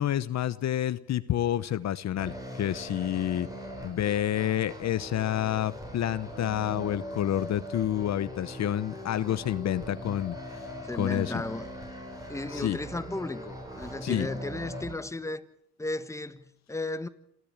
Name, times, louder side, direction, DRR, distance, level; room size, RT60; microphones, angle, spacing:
voice 1, 0.0-3.5 3.8-10.3 10.9-11.3 12.5-12.8 14.0-14.3, left 11 dB, 60° left, 0.9 m, -29 dB
sound 1, 2.2-14.9, equal, 10° right, 6.7 m, -41 dB
voice 2, 10.8-11.7 12.3-15.5 15.8-17.1, left 2 dB, 10° left, 1.4 m, -35 dB
27.0 x 14.0 x 8.8 m
cardioid pair, 90°, 30 cm